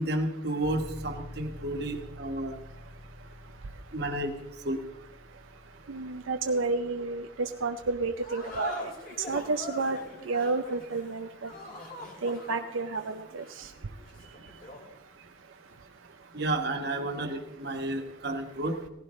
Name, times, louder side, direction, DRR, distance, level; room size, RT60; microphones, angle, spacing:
voice 1, 0.0-2.6 3.9-4.3 4.6-4.8 16.3-18.8, right 1 dB, 55° right, 4 dB, 1.5 m, -31 dB
sound 1, 0.6-11.2, left 1 dB, 10° right, 1.7 m, -49 dB
voice 2, 5.9-8.9 9.3-10.0 10.3-11.5 12.2-13.4, right 3 dB, 85° right, 6 dB, 0.6 m, -30 dB
sound 2, 8.2-14.9, left 1 dB, 45° left, 2.6 m, -42 dB
17.5 x 15.5 x 3.2 m, 0.95 s
head